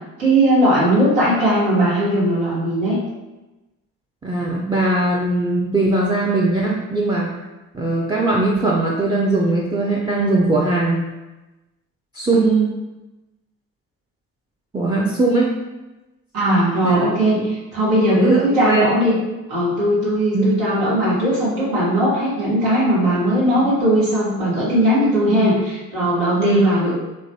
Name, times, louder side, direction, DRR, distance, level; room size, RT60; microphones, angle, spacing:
voice 1, 0.2-3.0 16.3-19.1 19.5-26.9, right 1 dB, 80° right, -9 dB, 1.2 m, -18 dB
voice 2, 4.2-7.3 7.7-11.1 12.1-12.7 14.7-15.5 16.8-17.1 17.3-17.5 18.1-18.9 20.3-20.5 23.5-23.6 25.2-25.4 26.4-26.6, right 2 dB, 10° right, -3 dB, 0.4 m, -20 dB
3.0 x 2.1 x 2.7 m, 1.1 s
hypercardioid pair, 45°, 38 cm